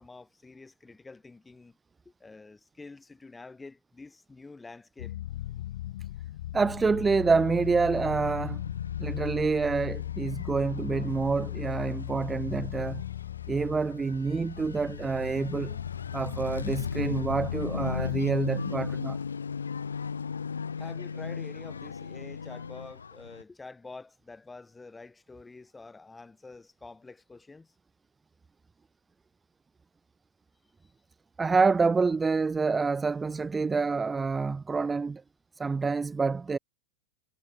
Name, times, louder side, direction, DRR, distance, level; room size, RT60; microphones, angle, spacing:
voice 1, 0.0-1.8 2.0-5.2 20.8-27.7 30.8-30.9, left 3 dB, 10° left, 6.2 m, -47 dB
sound 1, 5.0-18.2, left 14 dB, 55° left, 0.7 m, -37 dB
voice 2, 6.5-8.6 9.0-13.0 13.5-15.8 16.1-19.2 31.4-35.2 35.6-36.6, right 4 dB, 15° right, 0.5 m, -27 dB
sound 2, 7.3-23.4, left 6 dB, 70° left, 1.2 m, -38 dB
figure-of-eight pair, 90°, 0 cm